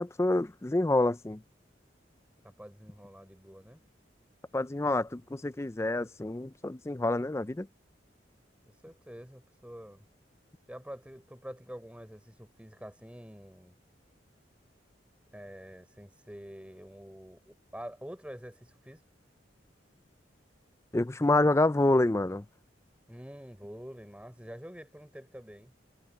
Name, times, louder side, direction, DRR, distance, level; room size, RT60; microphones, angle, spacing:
voice 1, 0.0-1.4 4.5-7.7 20.9-22.4, left 2 dB, 15° left, 0.4 m, -27 dB
voice 2, 2.4-3.8 8.7-10.0 10.7-13.8 15.3-19.0 23.1-25.7, equal, 5° right, 4.7 m, -47 dB
head